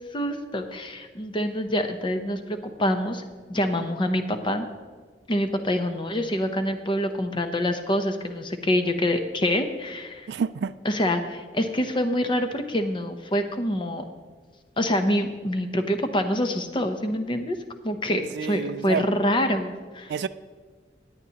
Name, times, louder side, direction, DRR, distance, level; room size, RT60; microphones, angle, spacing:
voice 1, 0.1-3.2 3.5-4.7 5.3-10.3 10.8-14.0 14.8-17.6 17.8-20.1, equal, 30° left, 7 dB, 0.7 m, -26 dB
voice 2, 10.3-10.8 18.3-19.1 20.1-20.3, right 6 dB, 70° right, 15 dB, 0.3 m, -28 dB
16.5 x 9.5 x 2.9 m, 1.5 s
head